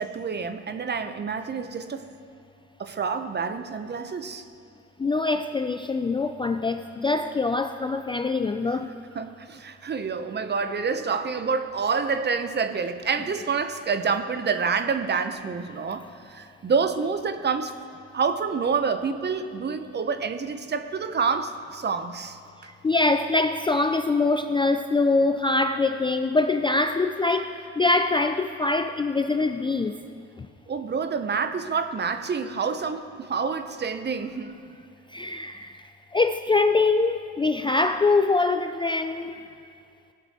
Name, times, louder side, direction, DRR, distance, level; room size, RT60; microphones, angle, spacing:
voice 1, 0.0-2.1 2.8-4.4 9.1-17.7 18.1-22.4 30.7-34.6, right 5 dB, 35° right, 10 dB, 0.7 m, -28 dB
voice 2, 5.0-8.9 22.6-29.9 30.4-30.5 35.1-35.8 36.1-39.4, left 3 dB, 15° left, 7 dB, 0.3 m, -24 dB
17.5 x 6.7 x 4.2 m, 2.3 s
cardioid pair, 90°, 30 cm